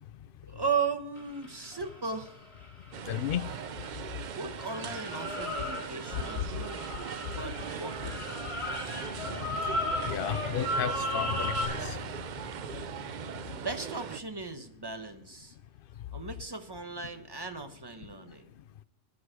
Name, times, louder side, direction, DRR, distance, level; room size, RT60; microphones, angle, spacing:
voice 1, 0.5-2.4 4.3-6.8 7.3-9.0 13.5-15.5 16.1-18.5, right 5 dB, 20° right, 0.9 m, -37 dB
sound 1, 1.2-4.2 4.6-11.6, left 1 dB, 30° left, 4.2 m, -36 dB
sound 2, 2.9-14.2, right 8 dB, 55° right, 0.6 m, -39 dB
voice 2, 3.1-3.4 6.1-6.2 8.9-9.3 9.7-12.0, left 10 dB, 60° left, 0.7 m, -33 dB
11.0 x 9.7 x 5.0 m
omnidirectional pair, 1.2 m